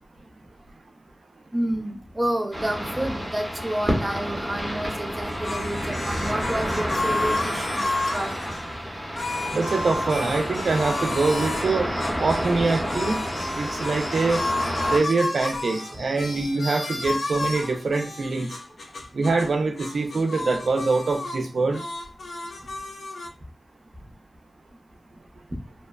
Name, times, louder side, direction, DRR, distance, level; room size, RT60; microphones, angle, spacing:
voice 1, 1.5-7.8 8.1-8.4, right 1 dB, 25° right, 4 dB, 0.5 m, -29 dB
sound 1, 2.5-15.0, equal, 5° right, 0.9 m, -29 dB
sound 2, 5.2-8.6 9.2-11.7 12.0-19.5 19.8-21.4 21.7-23.3, left 2 dB, 80° left, 0.3 m, -32 dB
voice 2, 9.5-11.9 12.2-13.2 13.5-14.4 14.9-18.5 19.1-21.8, right 3 dB, 80° right, 5 dB, 0.4 m, -24 dB
sound 3, 11.2-16.6, equal, 35° left, 1.4 m, -44 dB
2.7 x 2.0 x 2.3 m, 0.33 s
cardioid pair, 55°, 0 cm